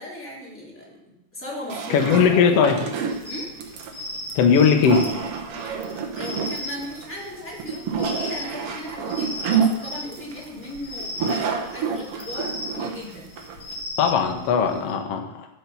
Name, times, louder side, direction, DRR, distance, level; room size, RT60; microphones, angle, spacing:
voice 1, 0.0-2.7 3.2-3.5 5.7-5.8 6.1-13.3, left 1 dB, 5° left, -5 dB, 2.5 m, -37 dB
sound 1, 1.7-13.8, right 6 dB, 65° right, 1.5 m, -28 dB
voice 2, 1.9-2.8 4.3-5.1 14.0-15.5, left 6 dB, 65° left, 4 dB, 1.6 m, -19 dB
sound 2, 3.1-14.9, left 1 dB, 35° left, 3.2 m, -37 dB
12.0 x 5.8 x 5.5 m, 0.87 s
omnidirectional pair, 3.8 m